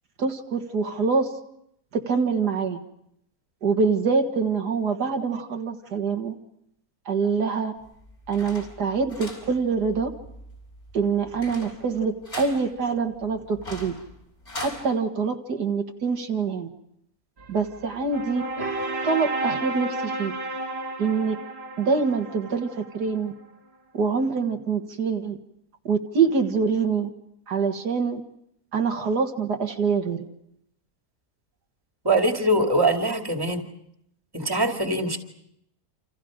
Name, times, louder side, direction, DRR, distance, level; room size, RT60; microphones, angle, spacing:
voice 1, 0.2-1.3 1.9-2.8 3.6-6.3 7.1-7.7 8.3-10.1 10.9-13.9 14.5-16.7 17.5-18.4 19.0-20.3 21.0-21.4 21.8-23.3 23.9-25.4 25.8-27.1 27.5-28.2 28.7-30.3, right 5 dB, 85° right, 4 dB, 2.3 m, -25 dB
sound 1, 7.8-14.8, left 1 dB, 45° left, 5.6 m, -41 dB
sound 2, 17.4-23.3, right 2 dB, 40° right, 1.7 m, -32 dB
voice 2, 32.0-33.6 34.3-35.2, right 1 dB, 15° right, 3 dB, 2.4 m, -22 dB
28.5 x 28.0 x 5.1 m, 0.75 s
omnidirectional pair, 1.7 m